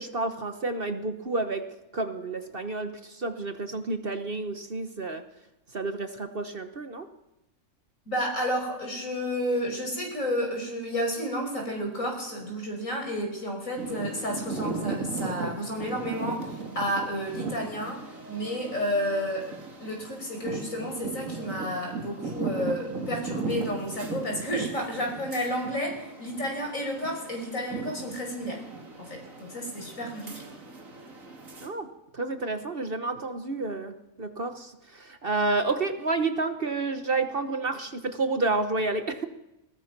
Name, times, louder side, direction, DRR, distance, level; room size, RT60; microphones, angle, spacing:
voice 1, 0.0-1.6 1.9-5.2 5.7-7.1 31.6-39.3, right 3 dB, 45° right, 9 dB, 1.3 m, -30 dB
voice 2, 8.1-18.0 18.3-19.5 19.8-25.9 26.2-28.6 29.0-30.4, equal, 65° left, 2 dB, 6.0 m, -31 dB
sound 1, 13.8-31.7, right 4 dB, 70° right, 2.8 m, -37 dB
21.0 x 20.5 x 6.1 m, 0.92 s
omnidirectional pair, 1.5 m